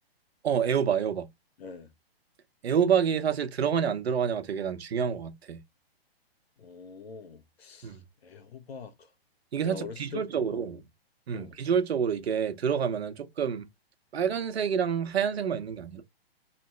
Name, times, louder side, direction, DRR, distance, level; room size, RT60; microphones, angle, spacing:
voice 1, 0.4-1.3 2.6-5.6 7.8-8.0 9.5-10.8 11.3-13.7 14.1-16.0, right 7 dB, 80° right, 1.0 m, -28 dB
voice 2, 1.6-1.9 6.6-9.1 9.6-10.8 11.3-11.6, left 5 dB, 75° left, 1.3 m, -44 dB
3.5 x 3.1 x 4.5 m
hypercardioid pair, 160°, 31 cm